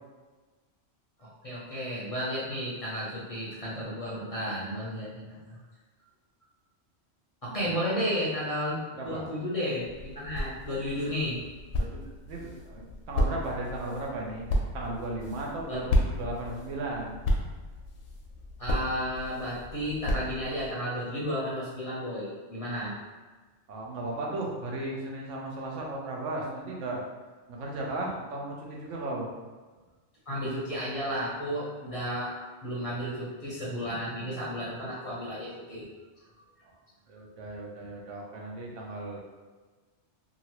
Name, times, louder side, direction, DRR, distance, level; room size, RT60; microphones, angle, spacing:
voice 1, 1.2-5.6 7.4-8.8 9.0-11.4 15.7-15.8 18.6-23.0 30.3-35.9, equal, 40° left, -8 dB, 0.6 m, -33 dB
sound 1, 9.8-20.7, left 1 dB, 80° left, 0.9 m, -33 dB
voice 2, 12.3-14.5 14.7-17.2 23.7-27.0 27.5-29.3 37.1-39.2, right 2 dB, 85° right, -2 dB, 1.0 m, -35 dB
2.9 x 2.5 x 2.8 m, 1.3 s
omnidirectional pair, 1.2 m